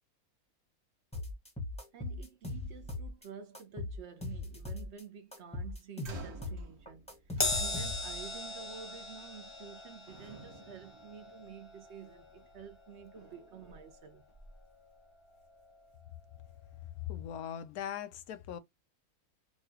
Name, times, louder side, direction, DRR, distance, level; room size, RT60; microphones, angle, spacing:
sound 1, 1.1-3.3 3.5-5.0 5.3-8.3, left 2 dB, 5° left, 0.8 m, -40 dB
voice 1, 1.9-14.3, right 7 dB, 55° right, 0.9 m, -50 dB
sound 2, 6.0-8.3 9.4-9.8 10.1-11.8, right 5 dB, 75° right, 1.5 m, -52 dB
Crash cymbal, 7.4-14.0 14.4-14.6 15.6-15.7, left 2 dB, 30° left, 0.6 m, -39 dB
voice 2, 17.0-18.6, left 10 dB, 80° left, 1.1 m, -40 dB
4.7 x 2.3 x 2.6 m
omnidirectional pair, 1.6 m